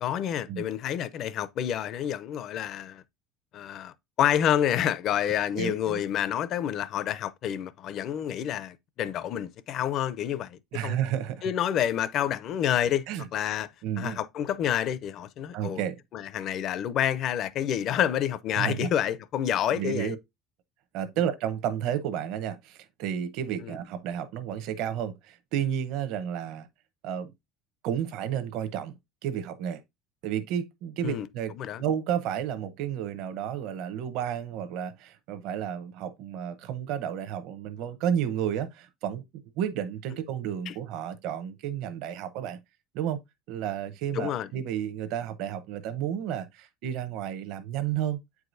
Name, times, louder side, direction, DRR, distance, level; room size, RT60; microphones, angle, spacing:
voice 1, 0.0-3.0 3.5-11.0 11.4-13.0 13.3-13.7 14.0-15.8 16.1-20.2 23.6-23.7 31.0-31.3 31.6-31.8 40.7-40.8 44.1-44.5, left 10 dB, 40° left, 0.4 m, -28 dB
voice 2, 5.5-6.0 10.7-11.5 13.1-13.3 13.8-14.2 15.5-16.0 18.6-18.9 19.7-20.2 20.9-26.7 27.0-27.3 27.8-28.9 29.2-29.8 30.2-31.5 31.8-39.2 39.6-42.6 42.9-43.2 43.5-48.2, right 9 dB, 60° right, 0.8 m, -31 dB
8.4 x 4.7 x 2.6 m
cardioid pair, 170°, 0 cm